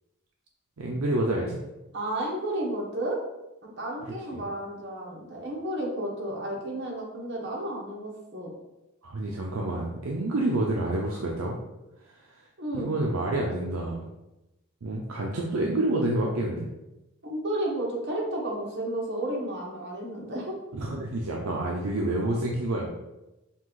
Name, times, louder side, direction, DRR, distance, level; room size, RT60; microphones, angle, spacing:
voice 1, 0.8-1.6 4.0-4.4 9.0-11.6 12.7-14.1 14.8-16.7 20.7-22.9, right 1 dB, 70° right, -2 dB, 0.5 m, -28 dB
voice 2, 1.9-3.2 3.6-8.5 12.6-12.9 17.2-20.5, right 1 dB, 50° right, -3 dB, 1.1 m, -32 dB
5.7 x 2.4 x 3.1 m, 0.99 s
head